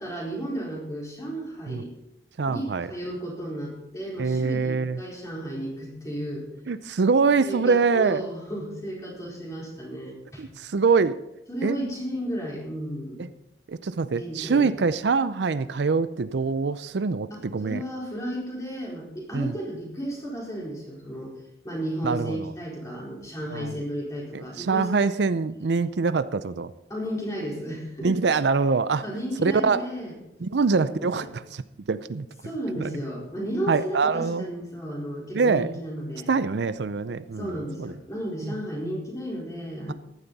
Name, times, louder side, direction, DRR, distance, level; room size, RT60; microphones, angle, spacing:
voice 1, 0.0-1.9 2.5-6.5 7.4-10.4 11.5-13.2 14.2-14.8 17.3-21.3 21.6-25.1 26.9-28.1 29.0-30.1 30.7-31.3 32.4-36.3 37.4-39.9, equal, 20° left, -4 dB, 4.4 m, -33 dB
voice 2, 2.4-2.9 4.2-5.0 6.7-8.2 10.4-11.2 11.6-11.8 13.2-13.3 13.7-17.8 19.3-19.5 22.0-22.5 23.5-23.8 24.3-26.7 28.0-29.0 29.4-29.8 30.4-31.6 31.9-32.3 32.8-33.0 33.7-34.5 35.3-35.7 36.3-37.9 38.4-38.5 39.9-40.0, right 4 dB, 80° right, 14 dB, 0.5 m, -24 dB
15.0 x 11.5 x 4.1 m, 0.86 s
head